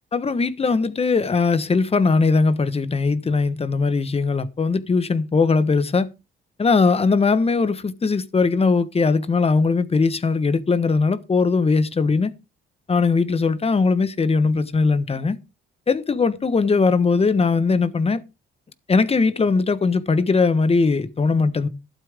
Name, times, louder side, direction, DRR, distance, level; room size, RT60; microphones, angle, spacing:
voice 1, 0.1-6.1 6.6-12.3 12.9-15.4 15.9-18.2 18.9-21.7, left 4 dB, 30° left, 1.3 m, -20 dB
12.5 x 11.5 x 3.6 m
cardioid pair, 90°, 20 cm